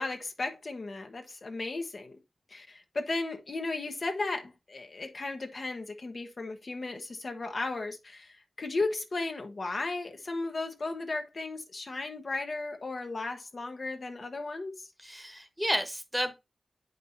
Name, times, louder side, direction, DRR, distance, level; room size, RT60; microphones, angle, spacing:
voice 1, 0.0-2.2 2.5-14.8, left 3 dB, 55° left, 1.0 m, -35 dB
voice 2, 15.0-16.3, equal, 5° right, 1.3 m, -31 dB
8.3 x 5.4 x 2.7 m
wide cardioid pair, 70°, 0 cm